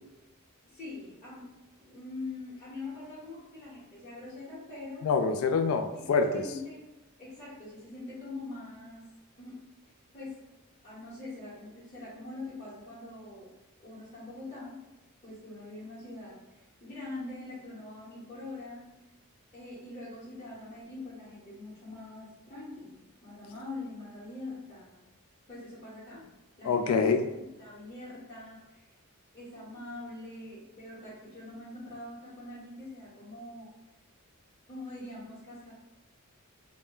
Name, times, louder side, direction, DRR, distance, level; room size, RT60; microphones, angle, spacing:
voice 1, 0.6-5.1 5.9-6.8 7.2-9.1 9.4-9.6 10.1-10.4 10.8-13.5 13.8-14.8 15.2-19.1 19.5-25.0 25.5-26.3 26.6-28.9 29.3-33.7 34.7-35.7, left 2 dB, 30° left, -12 dB, 0.9 m, -43 dB
voice 2, 5.0-6.4 26.6-27.2, left 5 dB, 70° left, 6 dB, 0.3 m, -26 dB
2.1 x 2.0 x 3.7 m, 1.0 s
head